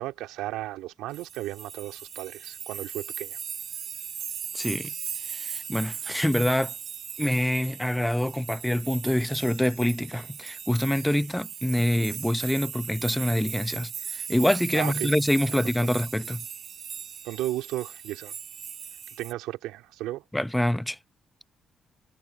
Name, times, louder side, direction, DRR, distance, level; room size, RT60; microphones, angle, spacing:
voice 1, 0.0-3.4 14.7-15.1 15.8-15.9 17.2-18.3 19.2-20.2, right 16 dB, 80° right, 3.0 m, -34 dB
sound 1, 1.1-19.3, right 7 dB, 60° right, 1.8 m, -38 dB
voice 2, 4.5-4.9 5.3-6.7 7.2-16.4 20.3-21.0, left 1 dB, 5° left, 0.8 m, -26 dB
hypercardioid pair, 50°, 0 cm